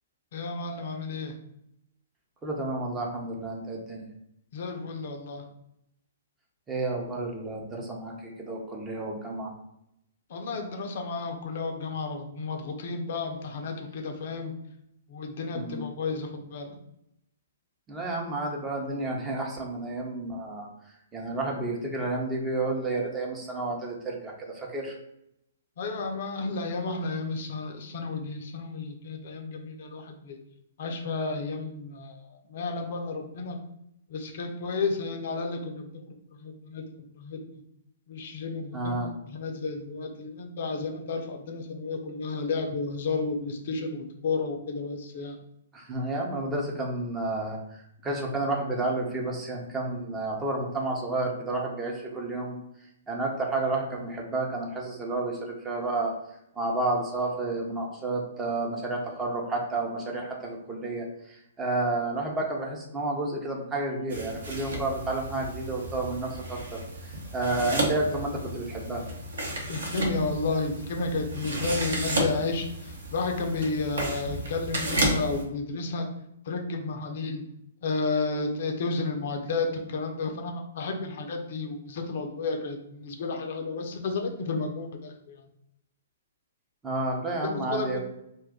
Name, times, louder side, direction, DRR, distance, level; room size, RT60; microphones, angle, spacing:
voice 1, 0.3-1.3 4.5-5.4 10.3-14.5 15.1-16.8 25.8-30.4 30.8-33.6 34.1-36.8 37.1-37.6 38.1-39.0 39.3-45.4 69.7-76.1 76.4-77.4 77.8-85.5 87.4-88.0, left 3 dB, 50° left, 3 dB, 0.5 m, -32 dB
voice 2, 2.4-4.1 6.7-9.5 15.5-15.8 17.9-20.7 21.1-24.9 38.7-39.1 45.7-52.6 53.1-56.1 56.5-69.1 86.8-88.0, right 2 dB, 15° right, -1 dB, 0.7 m, -31 dB
sound 1, 64.1-75.4, right 1 dB, 65° right, 0.8 m, -32 dB
2.5 x 2.3 x 3.6 m, 0.78 s
figure-of-eight pair, 120°, 0 cm